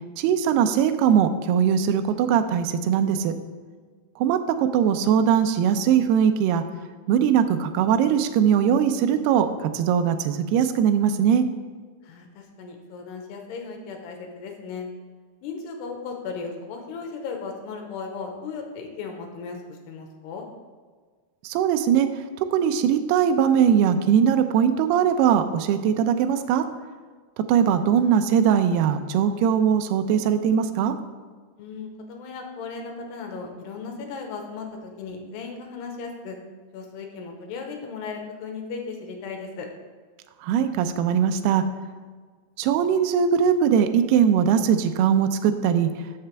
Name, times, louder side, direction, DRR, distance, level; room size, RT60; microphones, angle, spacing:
voice 1, 0.2-3.3 4.2-6.6 7.1-11.5 21.4-22.1 22.5-26.7 27.5-31.0 40.4-41.6 42.6-45.9, right 8 dB, 80° right, 8 dB, 2.5 m, -20 dB
voice 2, 12.0-14.9 15.4-20.5 31.6-36.4 36.7-39.7, left 5 dB, 80° left, 3 dB, 3.2 m, -36 dB
14.0 x 6.7 x 3.5 m, 1.5 s
omnidirectional pair, 4.9 m